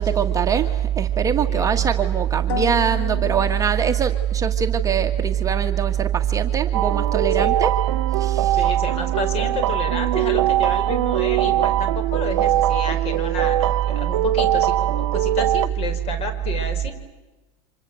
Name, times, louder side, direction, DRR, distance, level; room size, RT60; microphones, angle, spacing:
voice 1, 0.0-7.7 8.1-8.6, right 8 dB, 20° right, 5 dB, 1.6 m, -21 dB
voice 2, 1.5-1.9 7.3-7.5 8.5-16.9, left 4 dB, 40° left, 9 dB, 4.7 m, -31 dB
sound 1, 2.5-4.5, left 7 dB, 80° left, 3.8 m, -33 dB
sound 2, 6.7-15.7, right 13 dB, 80° right, 0.9 m, -22 dB
29.5 x 26.0 x 7.7 m, 1.1 s
supercardioid pair, 120°, 15 cm